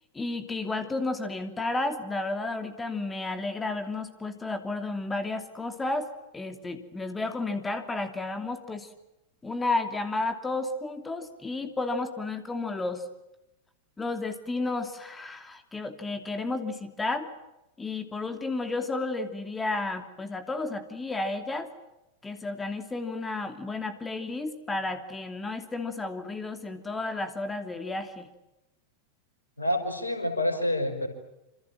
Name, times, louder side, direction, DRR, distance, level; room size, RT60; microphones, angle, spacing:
voice 1, 0.1-8.9 9.4-13.0 14.0-17.3 17.8-21.7 22.2-28.3, left 2 dB, 15° left, 8 dB, 2.9 m, -32 dB
voice 2, 29.6-31.1, left 1 dB, 80° left, 7 dB, 5.7 m, -27 dB
28.0 x 27.5 x 7.5 m, 0.93 s
figure-of-eight pair, 90°, 0 cm